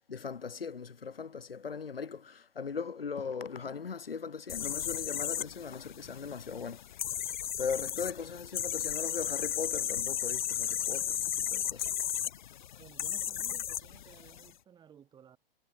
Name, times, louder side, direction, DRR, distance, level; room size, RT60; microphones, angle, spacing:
voice 1, 0.1-6.8 7.6-11.2 11.5-11.9, left 5 dB, 75° left, 1.0 m, -39 dB
sound 1, 4.5-14.5, left 10 dB, 55° left, 0.9 m, -35 dB
voice 2, 12.8-15.4, right 8 dB, 15° right, 3.0 m, -56 dB
figure-of-eight pair, 115°, 29 cm